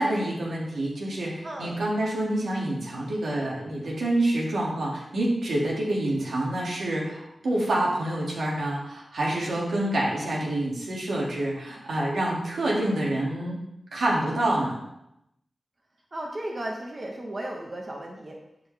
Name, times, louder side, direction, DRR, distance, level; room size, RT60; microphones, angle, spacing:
voice 1, 0.0-13.6 13.9-14.8, right 1 dB, 85° right, -4 dB, 2.2 m, -27 dB
voice 2, 1.4-1.8 16.1-18.4, right 1 dB, 40° right, 0 dB, 1.1 m, -35 dB
11.5 x 4.9 x 3.4 m, 0.83 s
cardioid pair, 55°, 0 cm